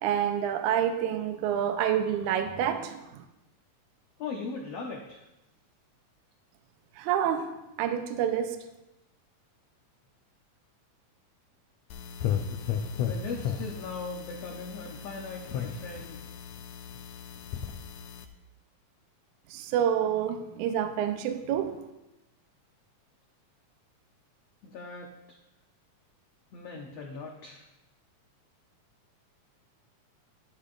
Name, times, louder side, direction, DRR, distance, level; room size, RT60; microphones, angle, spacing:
voice 1, 0.0-3.2 7.0-8.6 19.5-21.8, right 9 dB, 80° right, 6 dB, 1.9 m, -28 dB
voice 2, 4.2-5.2 13.0-16.2 24.7-25.1 26.5-27.6, left 4 dB, 75° left, 0 dB, 1.5 m, -39 dB
sound 1, 11.9-18.2, left 8 dB, 90° left, 1.5 m, -35 dB
11.5 x 10.5 x 2.5 m, 0.95 s
omnidirectional pair, 4.0 m